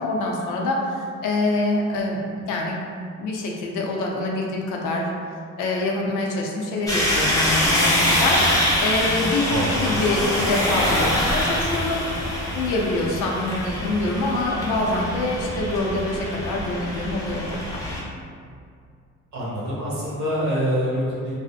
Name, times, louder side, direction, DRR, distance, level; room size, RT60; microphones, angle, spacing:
voice 1, 0.0-2.8 3.2-5.1 5.6-12.0 12.5-17.4 17.7-17.8, left 2 dB, 85° left, -1 dB, 0.5 m, -25 dB
sound 1, 6.9-18.0, left 1 dB, 10° left, 0.6 m, -24 dB
voice 2, 9.5-10.0 19.3-21.3, equal, 70° right, -6 dB, 0.9 m, -25 dB
2.7 x 2.1 x 2.4 m, 2.3 s
cardioid pair, 90°, 30 cm